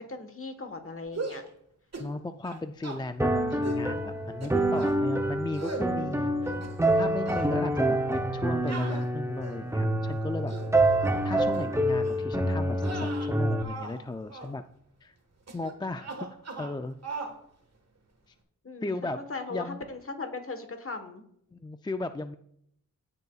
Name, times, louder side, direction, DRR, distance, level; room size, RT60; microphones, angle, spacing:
voice 1, 0.0-1.4 18.6-18.9 19.3-21.2, left 3 dB, 40° left, 7 dB, 1.3 m, -38 dB
sound 1, 1.1-1.5 1.9-2.1 2.4-3.0 3.6-3.9 4.4-5.0 5.5-5.9 6.4-7.0 7.3-7.5 8.7-9.7 10.3-10.7 11.5-11.7 12.0-12.3 12.8-14.0 14.3-14.5 15.5-15.7 16.0-16.8 17.0-17.4, right 3 dB, 50° right, 1.5 m, -39 dB
voice 2, 2.0-6.5 6.9-10.5 11.2-14.6 15.0-15.1 15.5-16.1 16.6-17.0 18.3-18.4 18.8-19.2 19.5-19.8 21.5-22.4, left 2 dB, 15° left, 9 dB, 0.3 m, -36 dB
sound 2, 3.2-13.6, right 1 dB, 10° right, 0.8 m, -27 dB
16.0 x 6.7 x 2.4 m, 0.71 s
wide cardioid pair, 95°, 34 cm